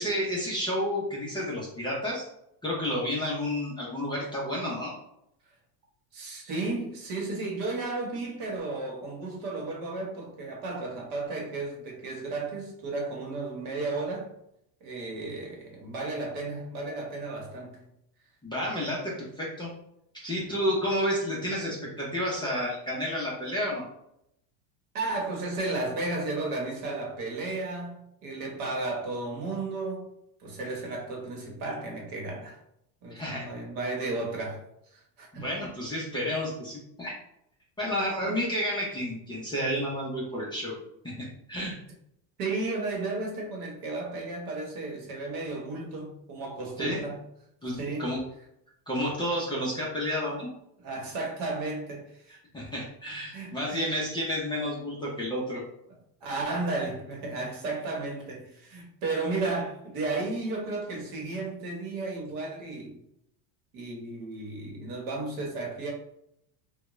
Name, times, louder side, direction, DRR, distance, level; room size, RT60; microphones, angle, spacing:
voice 1, 0.0-2.2 2.6-5.0 18.4-19.7 20.2-23.8 33.1-33.5 35.3-37.2 37.8-40.8 41.2-41.7 46.8-47.0 47.6-48.2 48.9-50.5 52.5-55.6, equal, 10° left, 0.5 m, -30 dB
voice 2, 6.1-14.3 14.8-17.9 24.9-30.1 30.4-32.6 33.0-34.6 34.9-35.5 38.2-38.4 42.4-47.2 47.8-48.1 50.8-52.4 53.3-53.8 56.2-63.0 63.7-65.9, right 3 dB, 50° right, 1.1 m, -33 dB
3.5 x 2.2 x 3.0 m
supercardioid pair, 140°, 44 cm